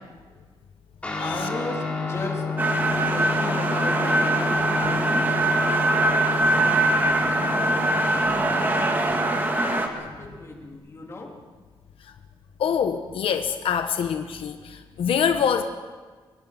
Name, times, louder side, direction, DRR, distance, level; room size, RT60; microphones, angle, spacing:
Guitar, 1.0-10.7, left 4 dB, 15° left, 3.4 m, -31 dB
voice 1, 1.2-2.4 3.1-6.1 6.6-6.7 7.1-7.9 8.2-9.8 10.2-11.3, left 2 dB, 30° left, 0 dB, 3.4 m, -37 dB
sound 1, 2.6-9.9, right 2 dB, 20° right, 2.2 m, -22 dB
voice 2, 12.6-15.6, left 7 dB, 85° left, 7 dB, 1.2 m, -25 dB
24.0 x 20.5 x 6.0 m, 1.4 s
wide cardioid pair, 180°, 9 cm